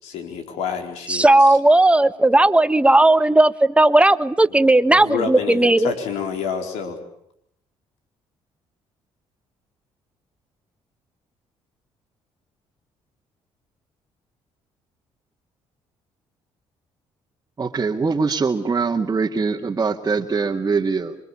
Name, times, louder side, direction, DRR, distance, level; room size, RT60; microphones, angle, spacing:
voice 1, 0.0-1.2 4.5-7.0, left 6 dB, 90° left, 5 dB, 4.5 m, -28 dB
voice 2, 1.1-5.9, right 2 dB, 10° right, 12 dB, 1.4 m, -15 dB
voice 3, 17.6-21.2, right 4 dB, 30° right, 1 dB, 2.1 m, -22 dB
26.5 x 24.5 x 8.8 m, 0.73 s
cardioid pair, 90°, 11 cm